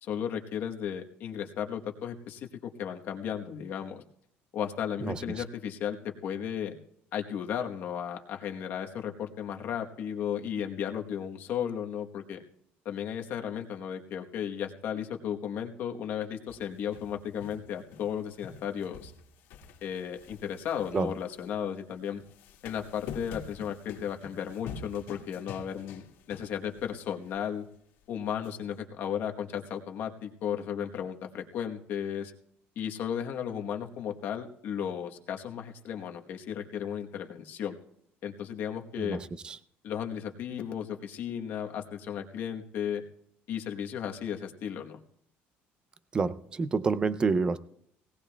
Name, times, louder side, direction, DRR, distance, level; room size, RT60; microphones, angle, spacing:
voice 1, 0.0-4.0 4.5-6.8 7.1-12.4 12.8-19.1 19.8-22.2 22.6-27.7 28.1-32.3 32.8-37.8 38.2-39.2 39.8-43.0 43.5-45.0, left 8 dB, 50° left, 4 dB, 1.1 m, -35 dB
sound 1, 16.5-18.2 18.4-21.5 22.2-26.9 27.3-27.4 28.4-28.5, left 6 dB, 80° left, 1.8 m, -46 dB
voice 2, 46.1-47.6, right 4 dB, 20° right, 14 dB, 0.4 m, -27 dB
19.5 x 17.5 x 2.3 m, 0.71 s
cardioid pair, 160°, 4 cm